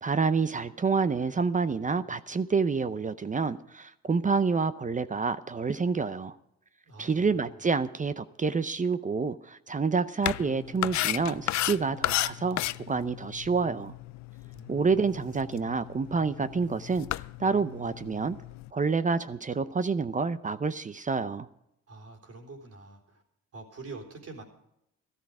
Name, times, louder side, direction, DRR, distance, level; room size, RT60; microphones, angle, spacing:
voice 1, 0.0-6.3 7.0-12.6 12.9-13.9 14.7-17.1 17.4-18.4 18.7-21.5, right 4 dB, 25° right, 13 dB, 0.6 m, -28 dB
voice 2, 6.8-7.6 14.5-15.3 21.9-23.2 23.5-24.4, right 3 dB, 50° right, 2 dB, 3.8 m, -46 dB
sound 1, 10.2-18.7, left 16 dB, 65° left, 0.5 m, -34 dB
14.0 x 13.0 x 4.9 m, 0.78 s
cardioid pair, 90°, 30 cm